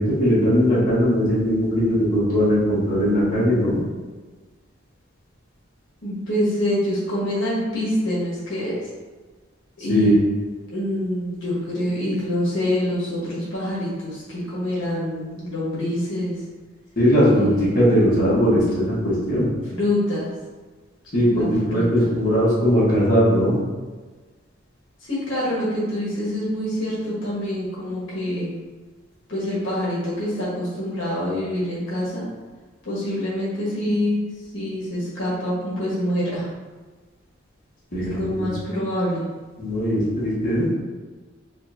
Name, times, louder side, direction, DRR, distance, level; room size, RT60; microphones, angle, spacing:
voice 1, 0.0-3.8 9.9-10.2 17.0-19.5 21.1-23.6 37.9-38.5 39.6-40.7, equal, 45° left, -9 dB, 1.3 m, -19 dB
voice 2, 6.0-8.8 9.8-10.1 10.7-16.4 17.3-17.8 19.7-20.3 21.4-22.1 25.0-28.5 29.3-32.2 32.8-34.2 34.5-36.5 38.0-39.2, left 1 dB, 75° left, -7 dB, 1.4 m, -26 dB
5.2 x 2.5 x 2.7 m, 1.3 s
head